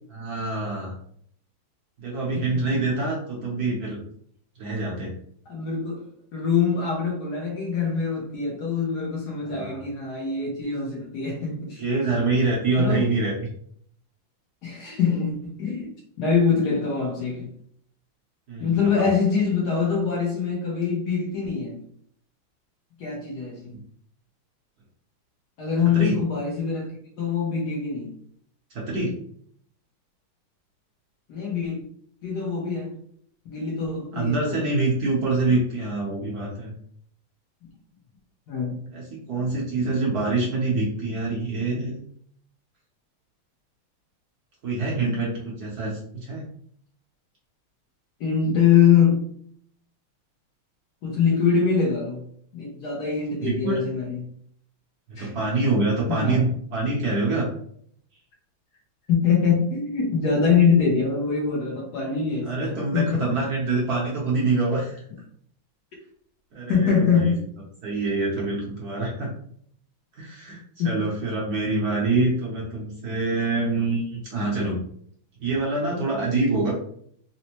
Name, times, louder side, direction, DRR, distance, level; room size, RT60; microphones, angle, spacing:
voice 1, 0.1-1.0 2.0-4.0 4.6-5.1 9.4-9.8 11.8-13.3 18.5-19.1 23.7-23.8 25.9-26.1 28.7-29.1 34.1-36.7 38.9-42.0 44.6-46.4 53.4-53.8 55.2-57.5 62.4-65.0 66.5-67.3 67.8-69.3 70.1-74.8 75.4-76.7, right 3 dB, 60° right, -4 dB, 1.1 m, -25 dB
voice 2, 5.5-6.0 6.3-11.8 12.8-13.0 14.6-15.9 16.2-17.5 18.6-21.8 23.0-23.7 25.6-26.9 27.2-28.1 31.3-31.8 32.2-33.0 33.4-34.6 38.5-38.8 48.2-49.2 51.0-52.2 52.5-54.2 55.2-55.3 56.1-56.4 59.1-63.3 66.7-67.4 70.8-70.9, left 6 dB, 65° left, -2 dB, 1.2 m, -23 dB
4.2 x 2.1 x 2.9 m, 0.64 s
omnidirectional pair, 2.3 m